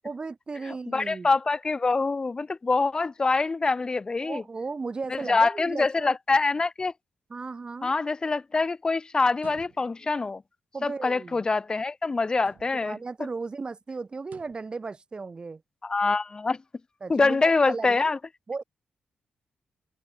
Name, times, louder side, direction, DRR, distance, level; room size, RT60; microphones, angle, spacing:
voice 1, 0.0-1.3 4.2-6.2 7.3-7.9 10.7-11.4 12.7-15.6 17.0-18.1 18.5-18.6, right 4 dB, 30° right, 1.2 m, -36 dB
voice 2, 0.7-4.4 5.1-6.9 7.8-10.4 10.8-13.0 15.8-16.6 17.1-18.2, left 3 dB, 30° left, 1.1 m, -25 dB
sound 1, 9.3-10.2 12.3-13.0 14.2-14.8, right 8 dB, 65° right, 2.5 m, -52 dB
cardioid pair, 100°, 3 cm